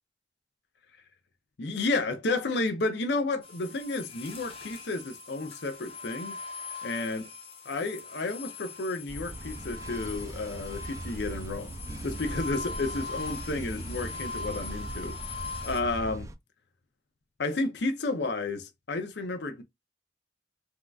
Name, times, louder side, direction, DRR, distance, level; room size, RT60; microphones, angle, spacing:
voice 1, 1.6-6.4 6.8-7.3 7.7-11.8 12.0-15.2 15.6-16.3 17.4-19.6, left 3 dB, 70° left, 0.6 m, -31 dB
sound 1, 3.4-15.8, left 4 dB, 30° left, 0.8 m, -41 dB
sound 2, 9.1-16.3, right 2 dB, 20° right, 0.3 m, -40 dB
3.5 x 2.5 x 2.3 m
head